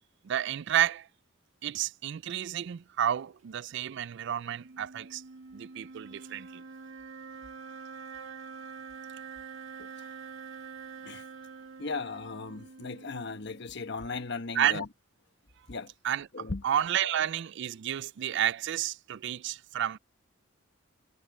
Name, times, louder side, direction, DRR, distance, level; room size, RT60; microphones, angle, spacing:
voice 1, 0.2-1.1 1.6-5.2 5.5-6.6 14.5-14.8 16.0-16.3 16.6-20.0, right 10 dB, 60° right, 0.4 m, -30 dB
sound 1, 4.5-13.9, right 5 dB, 75° right, 1.9 m, -46 dB
voice 2, 9.8-10.1 11.0-11.2 11.8-14.9 15.7-15.9 16.3-16.7 17.0-17.2, left 4 dB, 60° left, 1.1 m, -37 dB
head